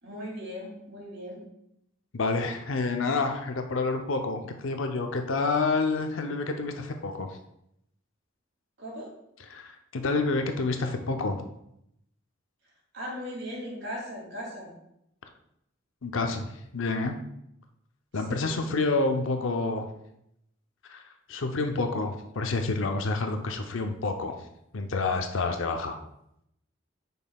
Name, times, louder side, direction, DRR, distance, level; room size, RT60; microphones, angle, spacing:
voice 1, 0.0-1.4 8.8-9.1 12.9-14.7 18.1-18.6, equal, 60° right, -3 dB, 2.8 m, -38 dB
voice 2, 2.1-7.3 9.5-11.4 16.0-17.1 18.1-19.9 20.9-21.0 21.3-24.4 24.7-26.0, left 3 dB, 75° left, 5 dB, 0.6 m, -28 dB
9.5 x 5.4 x 2.3 m, 0.78 s
head